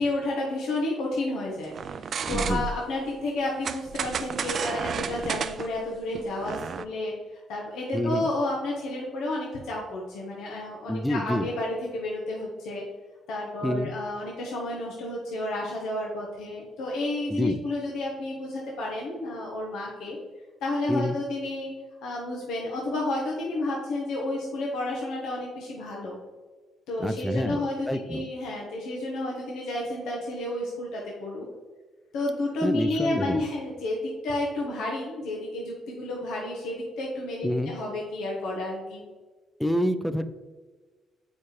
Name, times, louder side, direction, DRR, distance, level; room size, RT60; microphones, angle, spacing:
voice 1, 0.0-1.7 2.1-12.8 13.3-20.2 20.6-21.7 22.0-26.2 26.9-31.5 32.1-39.0, left 2 dB, 85° left, -2 dB, 1.1 m, -31 dB
sound 1, 1.7-2.9 3.6-6.8, right 6 dB, 55° right, 0.3 m, -32 dB
voice 2, 2.3-2.6 7.9-8.3 10.9-11.5 13.6-13.9 17.3-17.6 20.9-21.2 27.0-27.6 27.9-28.2 32.6-33.4 37.4-37.7 39.6-40.2, left 1 dB, 5° left, 11 dB, 0.5 m, -27 dB
7.3 x 4.8 x 3.2 m, 1.3 s
cardioid pair, 90°, 0 cm